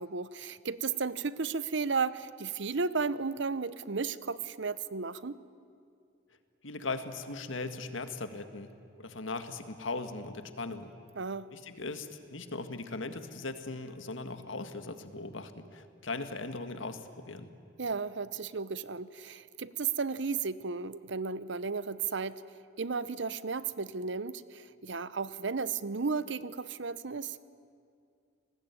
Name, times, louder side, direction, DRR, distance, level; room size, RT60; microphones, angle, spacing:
voice 1, 0.0-5.4 11.2-11.5 17.8-22.4 22.8-27.4, right 4 dB, 65° right, 16 dB, 0.8 m, -34 dB
voice 2, 6.6-8.7 9.0-10.9 11.5-17.5, left 3 dB, 85° left, 9 dB, 1.9 m, -39 dB
29.5 x 20.0 x 9.6 m, 2.4 s
head